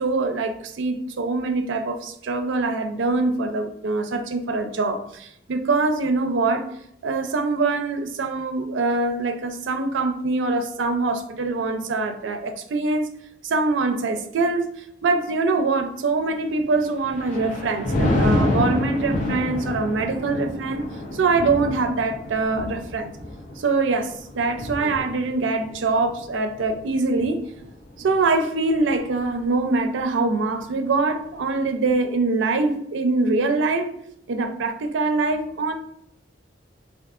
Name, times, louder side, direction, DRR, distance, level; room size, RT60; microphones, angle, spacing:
voice 1, 0.0-6.7 7.0-13.1 13.4-20.9 21.1-23.1 23.6-27.4 28.0-33.9 34.3-35.7, right 3 dB, 90° right, 7 dB, 0.4 m, -24 dB
Thunder, 16.7-28.2 28.7-29.0, left 1 dB, 45° left, 0.7 m, -28 dB
3.5 x 2.5 x 2.4 m, 0.72 s
head